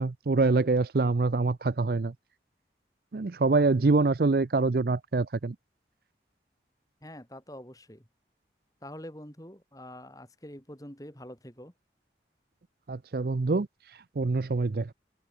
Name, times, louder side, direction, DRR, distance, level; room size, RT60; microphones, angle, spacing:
voice 1, 0.0-2.1 3.1-5.6 12.9-13.7 14.2-14.9, right 3 dB, 55° right, 0.5 m, -25 dB
voice 2, 7.0-8.1 8.8-11.7, left 1 dB, 20° left, 3.7 m, -45 dB
head